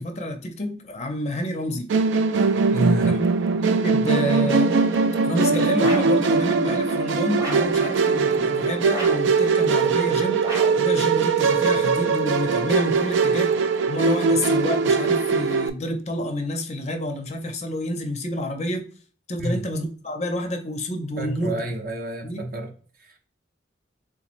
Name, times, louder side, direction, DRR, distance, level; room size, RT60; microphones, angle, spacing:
voice 1, 0.0-1.9 3.0-3.2 3.7-4.7 5.2-10.5 10.8-13.5 13.9-18.9 19.3-21.6 22.2-22.5, left 1 dB, 35° left, 5 dB, 0.5 m, -29 dB
Musical instrument, 1.9-15.7, right 4 dB, 80° right, 0.3 m, -21 dB
voice 2, 2.7-3.1 19.4-19.7 21.2-22.7 23.0-23.2, right 1 dB, 50° right, 3 dB, 0.6 m, -28 dB
sound 1, 5.8-6.3 7.4-7.8 8.9-9.4 10.4-10.9, equal, 20° right, 0.8 m, -32 dB
3.6 x 3.0 x 2.5 m, 0.42 s
head